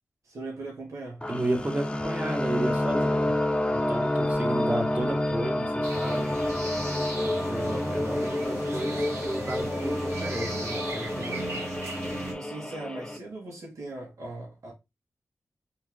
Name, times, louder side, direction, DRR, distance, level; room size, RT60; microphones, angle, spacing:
voice 1, 0.2-1.3 12.3-14.7, right 2 dB, 75° right, 2.1 m, -39 dB
sound 1, 1.2-13.2, left 1 dB, 20° left, 0.8 m, -29 dB
voice 2, 1.3-3.3 3.7-6.3 7.3-11.4, right 1 dB, 25° right, 1.6 m, -33 dB
sound 2, 5.8-12.3, right 2 dB, 55° right, 2.1 m, -36 dB
4.5 x 3.2 x 3.6 m
cardioid pair, 55°, 6 cm